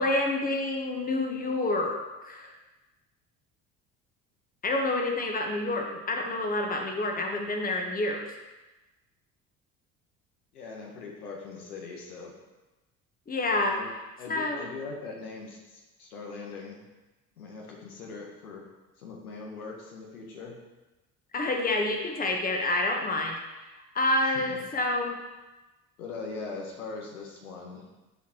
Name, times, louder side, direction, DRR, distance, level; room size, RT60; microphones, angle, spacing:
voice 1, 0.0-2.0 2.2-2.5 4.6-8.2 13.3-13.8 14.3-14.6 21.3-23.3 23.9-25.2, left 2 dB, 20° left, 2 dB, 1.2 m, -28 dB
voice 2, 10.5-12.3 13.7-13.9 14.2-16.8 17.4-18.6 19.0-20.5 24.3-24.6 26.0-27.9, left 4 dB, 75° left, -1 dB, 1.5 m, -41 dB
12.0 x 4.5 x 3.0 m, 1.1 s
figure-of-eight pair, 60°, 45 cm